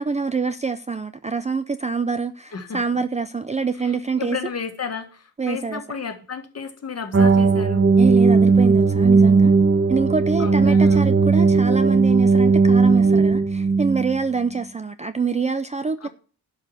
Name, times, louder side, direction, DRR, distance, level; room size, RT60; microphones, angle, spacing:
voice 1, 0.0-4.4 5.4-5.8 8.0-9.5 9.9-16.1, right 4 dB, 20° right, 0.5 m, -25 dB
voice 2, 2.5-2.8 3.8-7.9 10.4-11.0 16.0-16.1, left 6 dB, 40° left, 1.8 m, -33 dB
sound 1, 7.1-14.2, right 4 dB, 35° right, 1.3 m, -16 dB
11.5 x 4.9 x 7.2 m
wide cardioid pair, 125°, 38 cm